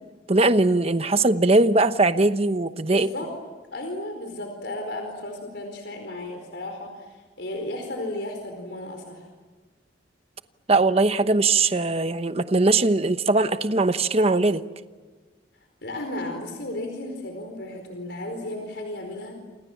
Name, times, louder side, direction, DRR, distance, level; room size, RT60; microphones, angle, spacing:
voice 1, 0.3-3.1 10.7-14.7, right 2 dB, 35° right, 10 dB, 1.0 m, -20 dB
voice 2, 2.9-3.3 3.7-9.2 15.8-19.4, left 1 dB, 70° left, 4 dB, 4.6 m, -34 dB
29.0 x 27.5 x 7.4 m, 1.4 s
head